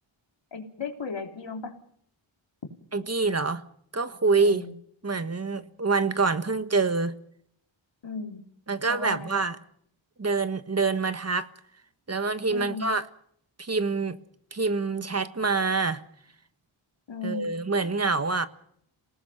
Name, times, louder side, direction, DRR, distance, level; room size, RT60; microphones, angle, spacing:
voice 1, 0.5-1.7 4.4-4.7 8.0-8.4 8.9-9.4 12.5-12.9 17.1-17.5, left 4 dB, 60° left, 3.6 m, -36 dB
voice 2, 2.9-3.6 3.9-4.7 5.0-7.1 8.7-9.6 10.2-11.5 12.1-13.0 13.6-14.2 14.5-16.0 17.2-18.5, right 4 dB, 30° right, 1.4 m, -26 dB
27.5 x 18.5 x 5.8 m
wide cardioid pair, 85°, 49 cm